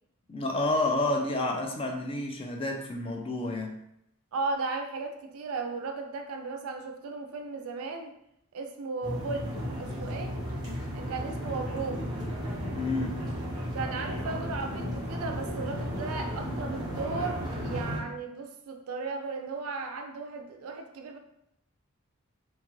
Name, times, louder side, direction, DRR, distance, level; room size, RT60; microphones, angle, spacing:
voice 1, 0.3-3.8 12.7-13.2, left 2 dB, 25° left, 2 dB, 0.3 m, -29 dB
voice 2, 4.3-8.1 8.5-10.4 10.9-12.1 13.7-21.2, right 4 dB, 65° right, 5 dB, 0.4 m, -36 dB
sound 1, 9.0-18.0, equal, 15° right, 1.0 m, -34 dB
2.8 x 2.4 x 3.0 m, 0.77 s
head